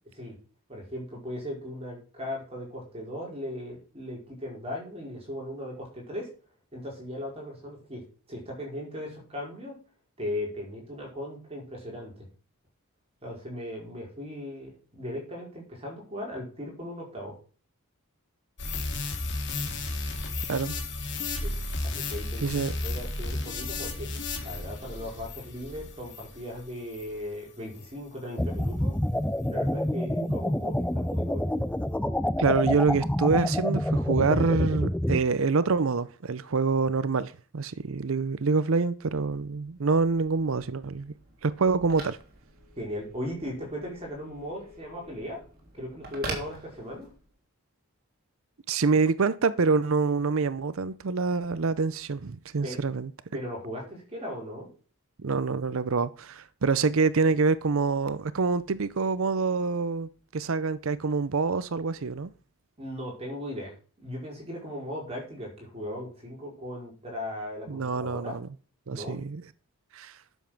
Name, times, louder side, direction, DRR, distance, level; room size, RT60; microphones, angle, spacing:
voice 1, 0.7-6.3 6.7-8.0 8.3-9.7 10.2-12.1 13.2-17.3 21.4-21.5 21.8-24.1 24.4-28.9 29.5-31.4 42.8-45.4 45.7-47.1 52.6-52.8 53.3-54.7 62.8-68.4 68.9-69.2, left 1 dB, 25° right, 4.8 m, -37 dB
sound 1, 18.6-27.2 27.8-27.9, left 2 dB, 55° left, 2.6 m, -34 dB
voice 2, 22.4-22.7 32.4-41.1 41.4-42.2 48.7-53.1 55.2-62.3 67.7-68.5 68.9-69.4 69.9-70.1, right 4 dB, 60° right, 0.6 m, -26 dB
sound 2, 28.4-35.2, left 1 dB, 5° left, 0.4 m, -27 dB
Telephone, 39.5-47.3, right 2 dB, 45° right, 3.5 m, -44 dB
11.0 x 7.2 x 5.9 m
head